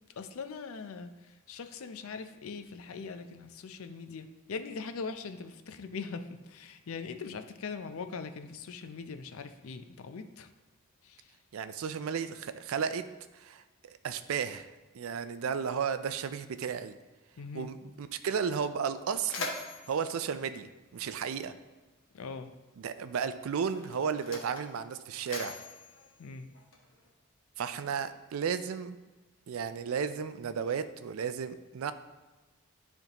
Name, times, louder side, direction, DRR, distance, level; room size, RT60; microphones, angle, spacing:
voice 1, 0.2-10.5 11.0-11.3 17.4-17.7 22.1-22.5 26.2-26.5, left 4 dB, 75° left, 9 dB, 0.5 m, -41 dB
voice 2, 11.5-13.1 13.3-14.7 14.9-16.9 17.5-19.5 19.9-21.5 22.8-25.5 27.6-29.0 29.5-31.9, right 6 dB, 75° right, 12 dB, 0.4 m, -34 dB
Mechanisms, 19.0-21.5 22.5-22.7 23.5-27.1, left 3 dB, 60° left, 1.1 m, -43 dB
10.5 x 3.5 x 2.9 m, 1.2 s
head